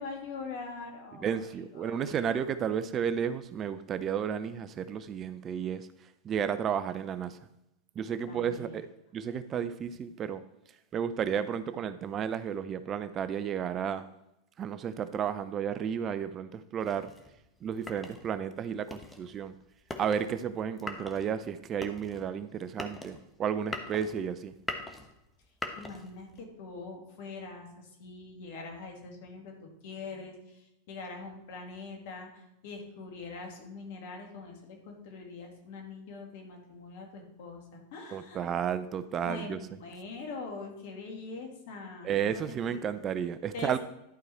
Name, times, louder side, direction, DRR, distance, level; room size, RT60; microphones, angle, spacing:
voice 1, 0.0-1.5 1.7-2.5 8.3-8.8 25.8-38.5 39.2-42.9 43.5-43.8, left 4 dB, 60° left, 2 dB, 2.3 m, -43 dB
voice 2, 1.2-5.9 6.2-7.4 8.0-8.9 9.1-10.4 10.9-14.0 14.6-17.1 17.6-19.5 20.0-24.5 38.1-39.6 42.0-43.8, right 8 dB, 35° right, 13 dB, 0.5 m, -32 dB
sound 1, 16.8-26.5, left 2 dB, 10° left, 1.1 m, -43 dB
11.5 x 4.7 x 4.3 m, 0.86 s
hypercardioid pair, 95°, 0 cm